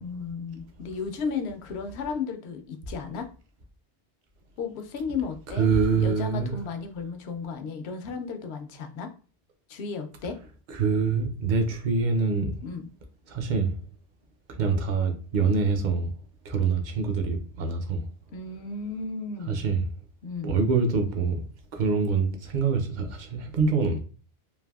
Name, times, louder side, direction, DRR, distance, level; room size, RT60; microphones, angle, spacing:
voice 1, 0.0-3.3 4.6-9.1 9.7-10.4 12.6-12.9 18.3-19.6 20.2-20.6, left 5 dB, 80° left, 0.8 m, -34 dB
voice 2, 5.6-6.5 10.8-12.5 13.3-13.7 14.6-16.1 16.5-18.0 19.5-19.8 20.4-21.4 21.7-24.0, right 5 dB, 55° right, 0.7 m, -25 dB
3.3 x 2.6 x 2.3 m
omnidirectional pair, 1.1 m